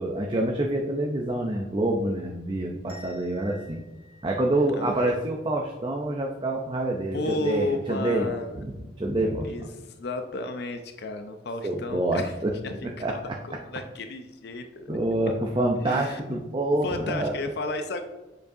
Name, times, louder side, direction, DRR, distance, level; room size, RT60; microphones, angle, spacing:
voice 1, 0.0-3.8 4.2-9.5 11.6-12.6 13.0-13.2 14.9-17.3, right 1 dB, 25° right, 0 dB, 0.5 m, -27 dB
sound 1, 2.9-5.7, left 2 dB, 60° right, 2.1 m, -53 dB
voice 2, 7.1-8.5 9.4-12.3 12.6-12.8 13.1-14.9 15.9-16.4 16.8-18.0, left 2 dB, 60° left, 7 dB, 0.5 m, -32 dB
7.6 x 4.7 x 2.7 m, 1.1 s
head